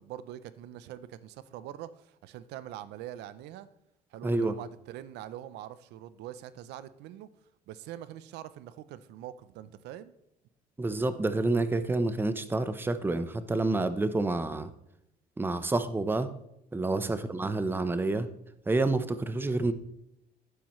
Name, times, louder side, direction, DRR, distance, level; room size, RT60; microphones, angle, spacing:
voice 1, 0.0-3.7 4.1-7.3 7.7-10.1 17.0-17.2, right 12 dB, 85° right, 15 dB, 0.6 m, -44 dB
voice 2, 4.2-4.6 10.8-14.7 15.4-16.3 16.7-18.3 18.7-19.7, right 2 dB, 10° right, 11 dB, 0.7 m, -28 dB
11.5 x 9.6 x 3.1 m, 0.84 s
cardioid pair, 110°, 17 cm